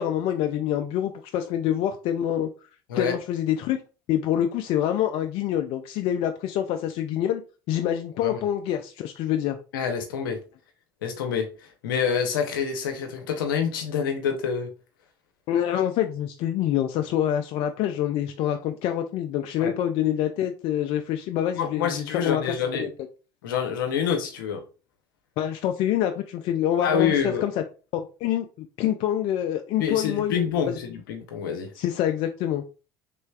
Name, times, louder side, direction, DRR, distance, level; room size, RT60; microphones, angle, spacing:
voice 1, 0.0-2.5 2.9-3.8 4.1-7.4 7.7-9.6 15.5-22.4 22.7-22.9 25.4-27.6 27.9-30.8 31.8-32.6, left 11 dB, 60° left, 0.4 m, -26 dB
voice 2, 9.7-10.4 11.0-11.5 11.8-14.7 19.6-19.7 21.5-22.9 23.4-24.6 26.8-27.4 29.8-31.7, left 7 dB, 85° left, 0.7 m, -27 dB
3.3 x 3.1 x 2.3 m
hypercardioid pair, 75°, 11 cm